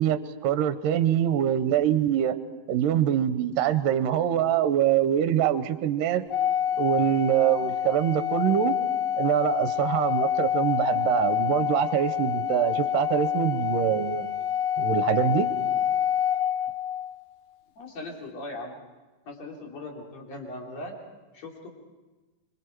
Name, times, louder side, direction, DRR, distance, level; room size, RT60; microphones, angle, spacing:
voice 1, 0.0-2.4 2.7-6.2 6.8-8.8 9.2-14.3 14.8-15.5, right 10 dB, 75° right, 11 dB, 2.4 m, -24 dB
Organ, 6.3-17.2, left 10 dB, 70° left, 2.2 m, -27 dB
voice 2, 17.8-18.7 19.2-20.9 21.3-21.7, left 2 dB, 50° left, 0 dB, 4.2 m, -39 dB
26.0 x 24.0 x 4.6 m, 1.2 s
omnidirectional pair, 4.0 m